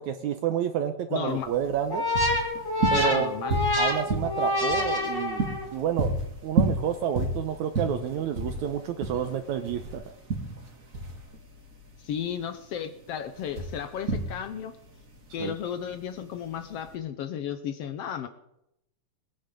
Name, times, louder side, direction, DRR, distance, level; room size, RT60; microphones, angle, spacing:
voice 1, 0.0-2.1 2.9-3.3 3.8-5.4 5.7-6.1 6.4-10.0 15.4-15.5, right 9 dB, 75° right, 7 dB, 2.0 m, -29 dB
voice 2, 1.1-1.5 2.9-3.6 12.0-14.7 15.3-18.3, left 8 dB, 75° left, 9 dB, 1.4 m, -34 dB
sound 1, 1.3-16.9, right 2 dB, 30° right, 1.8 m, -32 dB
sound 2, 1.9-5.8, left 1 dB, 15° left, 0.9 m, -27 dB
21.0 x 9.9 x 5.2 m, 0.81 s
omnidirectional pair, 3.7 m